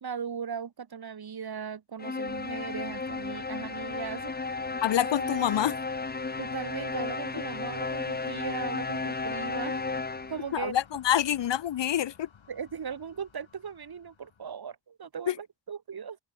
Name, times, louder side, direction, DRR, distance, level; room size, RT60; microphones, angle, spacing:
voice 1, 0.0-4.3 6.4-9.8 10.3-10.7 11.1-11.2 12.5-16.2, right 7 dB, 55° right, 1.0 m, -38 dB
sound 1, 2.0-10.5, left 3 dB, 20° left, 0.7 m, -34 dB
sound 2, 2.2-14.5, left 7 dB, 90° left, 1.9 m, -53 dB
voice 2, 4.8-5.8 10.5-12.3 15.3-15.4, left 11 dB, 70° left, 0.6 m, -26 dB
open air
wide cardioid pair, 65°, 45 cm